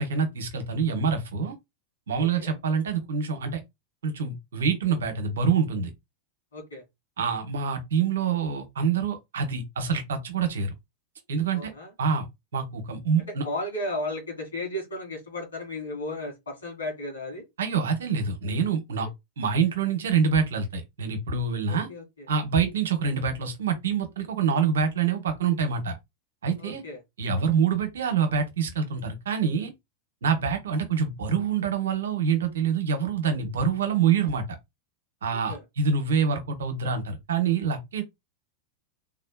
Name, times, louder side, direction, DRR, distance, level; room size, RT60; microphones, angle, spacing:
voice 1, 0.0-1.5 2.1-3.6 4.0-5.9 7.2-10.7 11.3-11.7 12.0-12.3 12.5-13.4 17.6-19.1 19.4-21.9 22.3-25.9 26.4-26.8 27.2-29.7 30.2-34.4 35.2-38.0, right 6 dB, 65° right, 0.9 m, -26 dB
voice 2, 2.2-2.6 6.5-6.8 11.5-11.9 13.4-17.4 21.6-22.3 26.6-27.0 35.3-35.6, left 1 dB, 70° left, 2.1 m, -35 dB
3.5 x 3.2 x 2.2 m
figure-of-eight pair, 90°, 0 cm